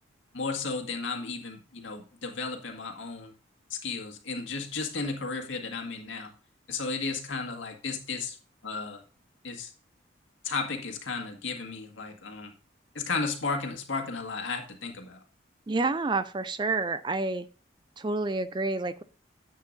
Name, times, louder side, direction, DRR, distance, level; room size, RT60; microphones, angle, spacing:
voice 1, 0.3-3.3 3.7-6.3 6.7-8.4 8.6-9.0 9.4-9.7 10.4-12.5 12.9-15.2, left 4 dB, 80° left, 4 dB, 1.9 m, -34 dB
voice 2, 15.7-17.5 18.0-19.0, right 3 dB, 25° right, 14 dB, 0.4 m, -29 dB
10.5 x 8.1 x 2.6 m, 0.37 s
head